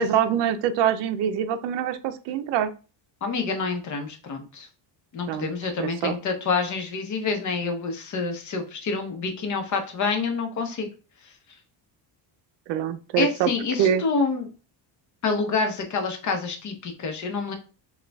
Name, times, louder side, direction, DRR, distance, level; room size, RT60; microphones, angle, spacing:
voice 1, 0.0-2.7 5.3-6.1 12.7-13.5 13.8-14.0, right 9 dB, 70° right, 10 dB, 0.6 m, -24 dB
voice 2, 3.2-4.7 5.1-10.9 11.2-11.3 13.2-14.5 15.2-17.5, left 4 dB, 40° left, 4 dB, 0.8 m, -27 dB
6.3 x 2.4 x 2.3 m, 0.35 s
cardioid pair, 150°, 44 cm